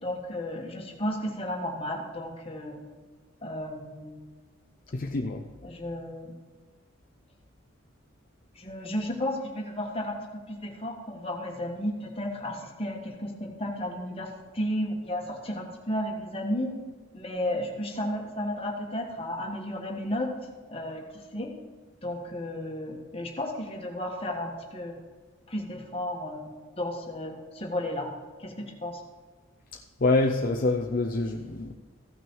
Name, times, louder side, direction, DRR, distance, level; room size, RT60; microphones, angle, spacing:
voice 1, 0.0-2.8 3.4-4.2 5.6-6.3 8.5-10.2 10.5-16.7 17.1-20.3 20.7-21.5 22.0-25.0 25.5-26.5 26.8-28.1 28.4-29.0, left 1 dB, 30° left, 0 dB, 1.5 m, -33 dB
voice 2, 4.9-5.4 30.0-31.7, left 2 dB, 45° left, 2 dB, 0.6 m, -26 dB
15.0 x 6.1 x 4.6 m, 1.4 s
head